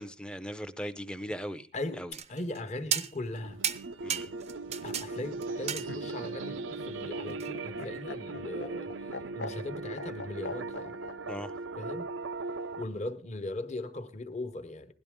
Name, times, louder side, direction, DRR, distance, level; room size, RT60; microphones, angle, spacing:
voice 1, 0.0-1.7 2.0-2.1 4.0-4.3 11.3-11.5, equal, 5° left, 0.6 m, -38 dB
voice 2, 1.7-3.6 4.8-8.9 9.3-11.0 11.8-12.1 12.8-14.9, left 2 dB, 35° left, 1.0 m, -39 dB
sound 1, 2.1-2.6 2.9-3.4 3.6-5.1 5.4-6.3 7.4-7.5, right 8 dB, 35° right, 0.6 m, -33 dB
sound 2, 3.2-12.8, right 3 dB, 90° right, 0.7 m, -38 dB
Laughter, 5.5-11.2 12.4-13.1, left 3 dB, 60° left, 0.6 m, -43 dB
17.0 x 11.5 x 3.6 m
head